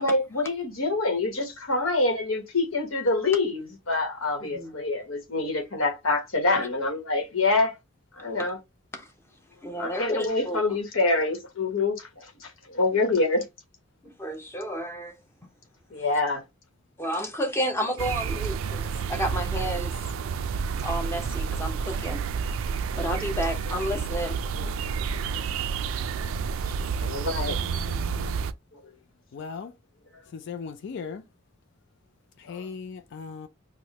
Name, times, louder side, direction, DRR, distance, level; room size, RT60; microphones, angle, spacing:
voice 1, 0.0-7.7 8.2-8.6 9.8-13.4 15.9-16.4 24.6-24.7 27.0-27.6 28.7-28.8 32.5-32.7, left 3 dB, 85° left, 1.0 m, -26 dB
voice 2, 4.4-4.8 8.4-8.5 9.0-9.1 9.6-10.6 14.0-15.2 17.0-19.9 20.8-22.2 23.0-24.4, equal, 15° left, 0.8 m, -31 dB
sound 1, 18.0-28.5, right 6 dB, 90° right, 0.3 m, -30 dB
voice 3, 27.5-28.4 29.3-29.7 30.3-31.2 32.4-33.5, left 5 dB, 60° left, 0.4 m, -38 dB
4.6 x 2.1 x 2.8 m
head